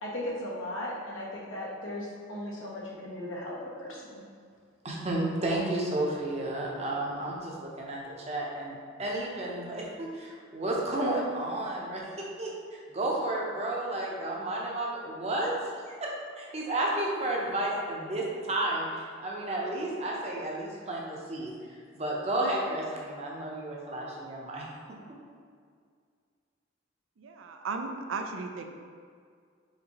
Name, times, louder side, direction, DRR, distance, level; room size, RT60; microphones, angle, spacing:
voice 1, 0.0-4.2, left 1 dB, 85° left, -4 dB, 1.1 m, -37 dB
voice 2, 4.8-8.0 8.3-16.1 16.4-21.5 21.9-24.7, right 1 dB, 35° right, -2 dB, 0.7 m, -32 dB
voice 3, 27.2-28.7, right 4 dB, 85° right, 5 dB, 0.4 m, -35 dB
4.4 x 3.7 x 2.9 m, 2.1 s
head